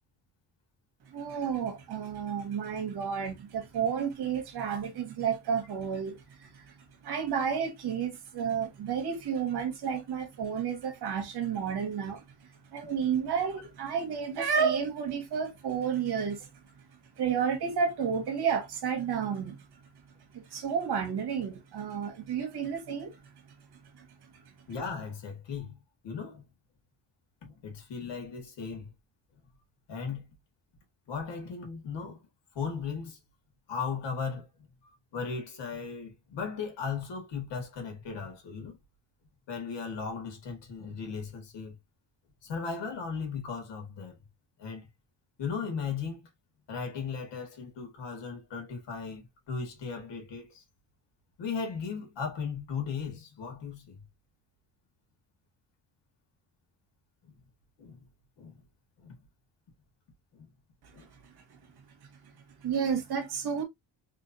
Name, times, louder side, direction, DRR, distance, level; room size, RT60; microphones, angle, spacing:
voice 1, 1.1-6.7 7.0-12.2 12.7-16.5 17.2-19.6 20.3-23.2 23.9-24.1 62.6-63.6, right 7 dB, 65° right, 1.4 m, -31 dB
voice 2, 24.7-26.4 27.4-28.9 29.9-30.3 31.1-32.2 32.5-33.2 33.7-34.5 34.8-38.8 39.5-41.8 42.4-44.2 44.6-44.9 45.4-46.3 46.7-50.6 51.4-54.0 57.2-57.3 57.8-58.0 58.4-58.6 59.0-59.2 60.4-60.5 60.9-61.1, left 5 dB, 75° left, 2.0 m, -37 dB
3.7 x 3.4 x 2.7 m
cardioid pair, 140°, 43 cm